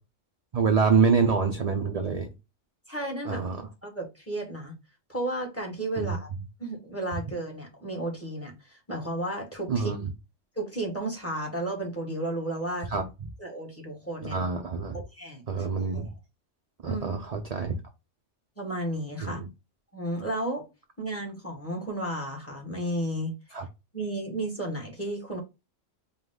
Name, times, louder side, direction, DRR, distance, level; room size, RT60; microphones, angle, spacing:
voice 1, 0.5-2.3 3.2-3.6 6.0-6.2 9.7-10.1 12.9-13.1 14.2-15.0 15.5-16.1 16.8-17.8 19.2-19.5 23.5-23.7, right 5 dB, 50° right, 0.5 m, -26 dB
voice 2, 2.9-3.5 3.8-4.7 5.1-6.3 6.6-9.9 10.5-12.9 13.4-14.4 15.1-15.7 15.9-16.1 16.8-17.1 18.6-19.4 19.9-20.7 21.0-23.3 23.9-25.4, right 1 dB, 10° left, 1.4 m, -33 dB
4.9 x 2.3 x 3.7 m
omnidirectional pair, 1.3 m